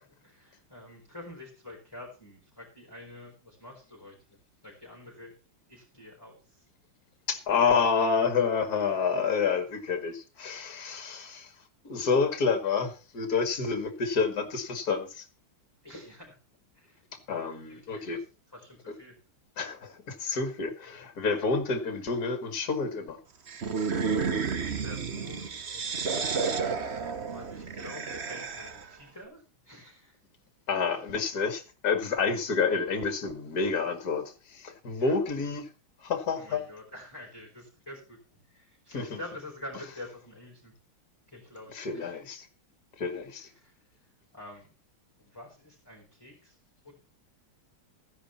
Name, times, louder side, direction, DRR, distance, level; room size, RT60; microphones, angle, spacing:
voice 1, 0.0-4.2 4.6-5.3 5.7-6.6 10.9-11.1 15.8-16.4 16.7-17.2 17.7-18.2 18.5-19.2 24.8-30.2 35.0-35.2 36.3-40.7 41.3-42.2 43.4-43.8 44.3-44.7 45.2-46.5 46.8-46.9, left 1 dB, 10° left, -2 dB, 4.3 m, -47 dB
voice 2, 7.3-11.5 11.8-15.2 17.3-18.2 19.6-23.2 30.7-35.6 36.0-36.6 38.9-39.2 41.7-42.5 43.0-43.5, left 5 dB, 50° left, 8 dB, 2.4 m, -29 dB
sound 1, 23.5-28.9, right 5 dB, 40° right, 1.1 m, -31 dB
14.5 x 10.0 x 4.3 m, 0.32 s
omnidirectional pair, 2.3 m